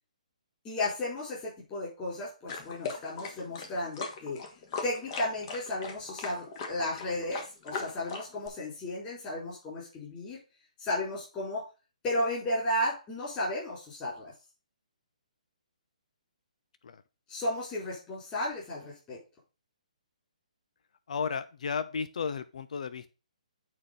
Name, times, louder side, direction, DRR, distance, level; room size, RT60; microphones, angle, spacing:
voice 1, 0.6-4.4 4.8-10.4 10.8-11.6 12.0-14.3 17.3-19.2, left 1 dB, 20° left, -5 dB, 4.5 m, -34 dB
sound 1, 2.5-8.5, left 4 dB, 35° left, 2.1 m, -39 dB
voice 2, 21.1-23.1, left 6 dB, 65° left, 12 dB, 0.8 m, -34 dB
8.5 x 4.4 x 5.4 m, 0.31 s
hypercardioid pair, 150°, 4 cm